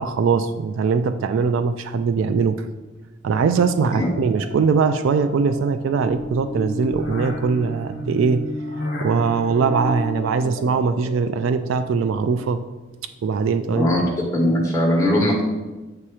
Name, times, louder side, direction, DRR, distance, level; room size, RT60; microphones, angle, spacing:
voice 1, 0.0-2.6 3.2-8.5 9.0-12.6 13.2-13.9, right 5 dB, 70° right, 9 dB, 0.3 m, -21 dB
sound 1, 3.4-12.5, left 1 dB, 50° left, 1.0 m, -33 dB
voice 2, 14.3-15.4, left 1 dB, 15° left, -3 dB, 1.3 m, -19 dB
7.8 x 2.9 x 4.8 m, 1.1 s
head